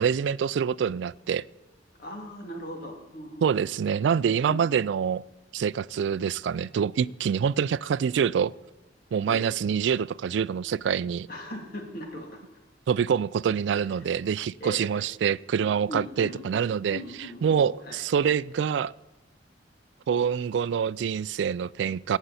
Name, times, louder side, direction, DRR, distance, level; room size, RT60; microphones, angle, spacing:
voice 1, 0.0-1.4 3.4-5.2 5.5-8.5 9.1-11.3 12.9-17.0 17.4-18.9 20.1-22.2, right 7 dB, 75° right, 0.3 m, -26 dB
voice 2, 2.0-3.7 4.4-4.7 9.3-9.6 11.3-12.6 13.9-14.1 14.6-15.1 15.9-16.6 16.9-18.0, left 1 dB, 55° left, 2.5 m, -40 dB
16.0 x 8.9 x 4.1 m
head